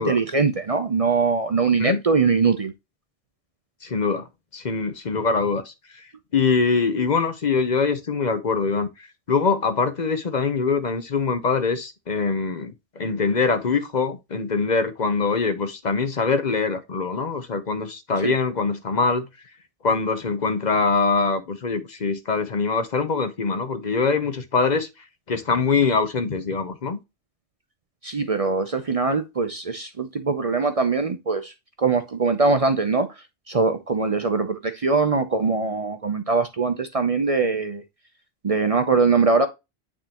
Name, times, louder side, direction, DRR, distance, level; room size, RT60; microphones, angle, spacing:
voice 1, 0.0-2.7 18.2-18.3 28.0-31.5 31.8-33.1 33.5-37.8 38.4-39.5, right 4 dB, 40° right, 0.6 m, -22 dB
voice 2, 3.8-5.7 6.3-8.9 9.3-19.3 19.8-24.9 25.3-27.0, left 4 dB, 45° left, 0.8 m, -23 dB
9.1 x 3.7 x 2.9 m
omnidirectional pair, 1.1 m